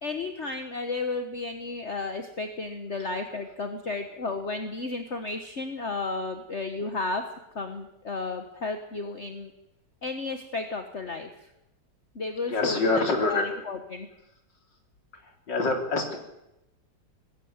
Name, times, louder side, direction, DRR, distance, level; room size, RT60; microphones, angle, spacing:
voice 1, 0.0-7.2 7.5-9.5 10.0-11.3 12.1-14.1, left 3 dB, 40° left, 6 dB, 1.7 m, -33 dB
voice 2, 12.5-13.5 15.5-16.2, left 3 dB, 75° left, 3 dB, 4.1 m, -25 dB
20.0 x 15.5 x 9.7 m, 0.88 s
omnidirectional pair, 1.9 m